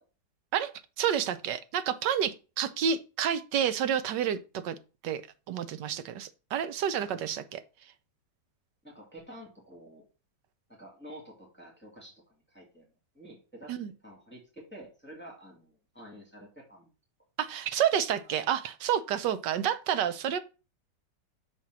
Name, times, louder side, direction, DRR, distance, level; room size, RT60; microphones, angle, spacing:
voice 1, 1.0-4.4 4.6-4.8 5.0-5.2 5.5-7.6 13.7-13.9 17.4-20.4, right 9 dB, 75° right, 1.4 m, -29 dB
voice 2, 8.8-10.0 10.7-12.2 12.5-12.9 13.1-13.7 14.0-16.9 17.7-17.8, equal, 5° left, 2.1 m, -49 dB
5.8 x 4.5 x 6.0 m
omnidirectional pair, 1.9 m